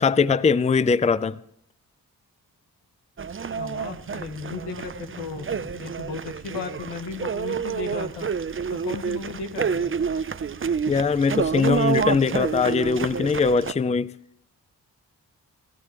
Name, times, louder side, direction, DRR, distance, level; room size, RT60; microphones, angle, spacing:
voice 1, 0.0-1.4 10.9-14.1, left 5 dB, 15° left, 0.5 m, -21 dB
sound 1, 3.2-13.7, right 6 dB, 30° right, 0.7 m, -28 dB
voice 2, 3.6-8.3 8.7-9.9, left 4 dB, 85° left, 1.5 m, -35 dB
20.0 x 12.5 x 3.1 m
supercardioid pair, 40°, 40 cm